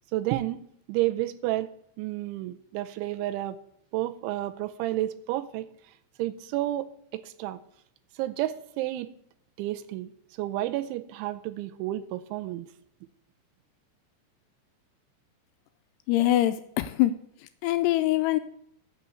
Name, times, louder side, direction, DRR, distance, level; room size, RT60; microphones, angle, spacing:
voice 1, 0.1-1.7 2.0-3.6 3.9-5.7 6.2-7.6 8.1-9.1 9.6-12.7, right 15 dB, 90° right, 10 dB, 3.0 m, -31 dB
voice 2, 16.1-17.1 17.6-18.4, left 15 dB, 90° left, 10 dB, 2.4 m, -23 dB
13.0 x 5.9 x 6.9 m, 0.69 s
omnidirectional pair, 5.4 m